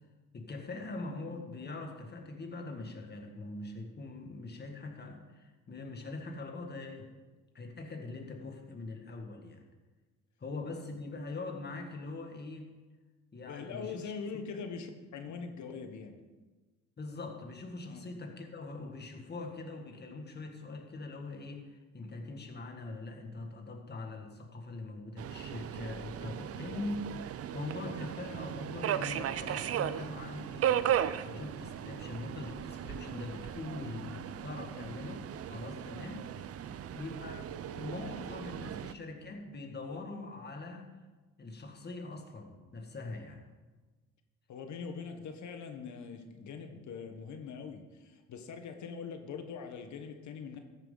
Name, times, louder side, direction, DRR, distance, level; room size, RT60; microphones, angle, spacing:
voice 1, 0.3-7.1 7.5-9.7 10.4-12.7 13.3-14.1 17.0-40.9 41.4-43.4, left 3 dB, 35° left, 3 dB, 1.9 m, -42 dB
voice 2, 13.4-16.2 17.9-18.1 44.5-50.6, left 5 dB, 70° left, 6 dB, 1.3 m, -42 dB
Subway metro underground, 25.2-38.9, right 10 dB, 50° right, 0.5 m, -36 dB
14.0 x 9.0 x 3.9 m, 1.3 s
cardioid pair, 90°, 30 cm